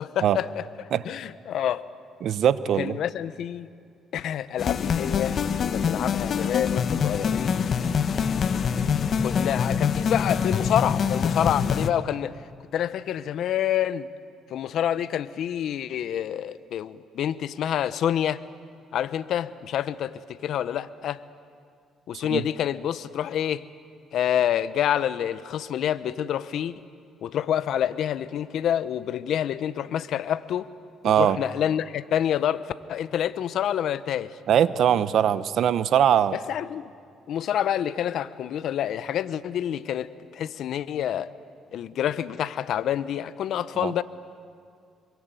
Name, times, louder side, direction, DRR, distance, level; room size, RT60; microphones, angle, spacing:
voice 1, 0.0-1.8 2.8-3.7 4.1-7.6 9.2-12.4 12.7-14.1 14.5-18.4 18.9-21.2 22.1-23.6 24.1-26.8 27.2-30.7 31.2-32.6 32.9-34.3 36.3-36.9 37.3-41.3 41.7-44.0, left 10 dB, 70° left, 14 dB, 0.9 m, -27 dB
voice 2, 2.2-2.9 22.1-22.4 31.0-31.4 34.5-36.4 43.8-43.9, right 9 dB, 65° right, 14 dB, 1.0 m, -21 dB
sound 1, 4.6-11.9, left 6 dB, 50° left, 1.1 m, -25 dB
26.0 x 23.5 x 9.2 m, 2.2 s
cardioid pair, 95°, 0 cm